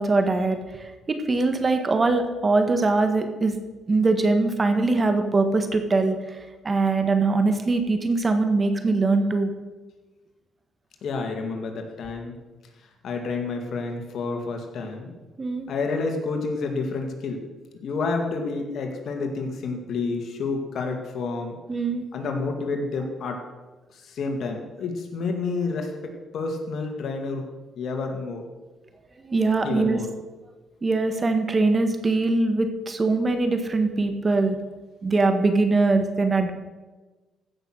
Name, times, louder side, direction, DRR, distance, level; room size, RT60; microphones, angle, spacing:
voice 1, 0.0-3.6 3.9-9.5 15.4-15.7 21.7-22.0 29.3-30.0 30.8-34.6 35.0-36.5, right 3 dB, 30° right, 7 dB, 1.5 m, -22 dB
voice 2, 11.0-12.4 13.0-15.1 15.7-17.4 17.8-21.6 22.1-23.4 23.9-27.5 27.8-28.4 29.6-30.1, left 4 dB, 65° left, 3 dB, 2.1 m, -29 dB
15.0 x 6.2 x 6.5 m, 1.2 s
cardioid pair, 90°, 0 cm